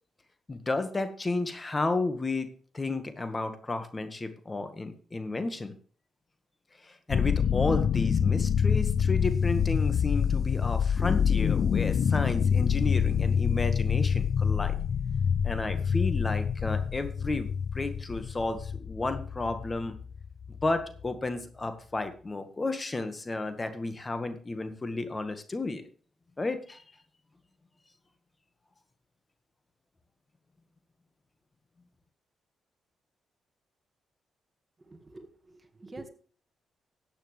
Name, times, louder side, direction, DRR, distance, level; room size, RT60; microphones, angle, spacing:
voice 1, 0.5-2.5 2.7-5.7 6.8-14.7 15.4-20.0 20.6-25.8 26.4-26.8, left 3 dB, 30° left, 9 dB, 1.8 m, -32 dB
sound 1, 7.1-21.1, left 7 dB, 65° left, 0.5 m, -26 dB
voice 2, 34.9-36.1, right 2 dB, 30° right, 7 dB, 2.0 m, -47 dB
14.0 x 9.0 x 3.5 m, 0.43 s
cardioid pair, 65°, 0 cm